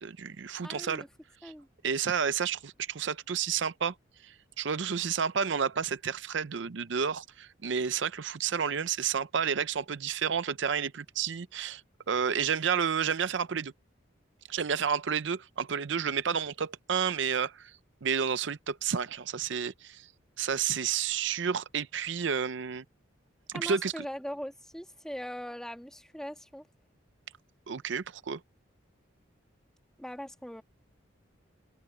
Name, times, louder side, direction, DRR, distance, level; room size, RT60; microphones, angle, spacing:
voice 1, 0.0-1.0 1.4-1.5 1.8-3.9 4.2-11.8 12.1-13.7 14.5-17.7 18.0-20.1 20.4-22.8 23.5-24.0 27.7-28.4, right 7 dB, 65° right, 0.5 m, -30 dB
voice 2, 0.6-1.1 1.4-1.7 23.5-26.7 30.0-30.6, equal, 5° left, 1.7 m, -40 dB
head